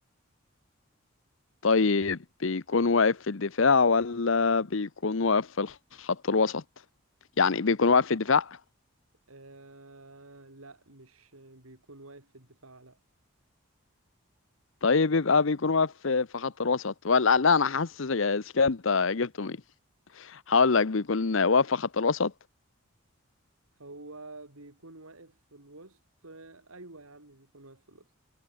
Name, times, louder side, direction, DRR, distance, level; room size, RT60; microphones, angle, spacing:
voice 1, 1.6-6.6 7.4-8.6 14.8-19.6 20.2-22.3, left 4 dB, 65° left, 0.8 m, -24 dB
voice 2, 9.3-13.0 23.7-28.1, right 2 dB, 80° right, 3.2 m, -49 dB
head